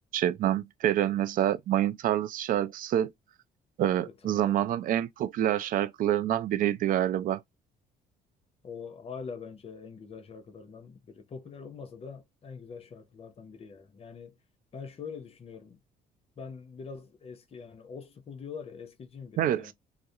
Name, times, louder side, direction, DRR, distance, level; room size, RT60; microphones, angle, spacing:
voice 1, 0.1-3.1 3.8-7.4 19.4-19.7, right 11 dB, 55° right, 0.4 m, -27 dB
voice 2, 4.1-4.7 8.6-14.4 14.7-15.8 16.4-19.7, left 5 dB, 35° left, 0.6 m, -44 dB
2.4 x 2.1 x 2.6 m
cardioid pair, 110°, 17 cm